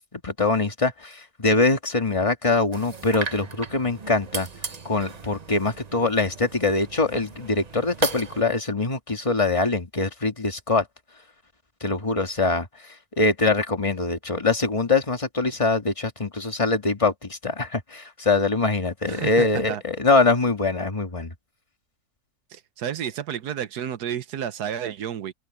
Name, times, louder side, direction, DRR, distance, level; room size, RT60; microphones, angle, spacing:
voice 1, 0.2-4.5 4.9-10.9 11.8-12.7 13.2-21.3, left 3 dB, 20° left, 1.8 m, -23 dB
sound 1, 2.7-8.4, right 4 dB, 30° right, 0.9 m, -35 dB
voice 2, 19.1-19.8 22.5-25.3, right 9 dB, 90° right, 1.5 m, -31 dB
open air
omnidirectional pair, 1.6 m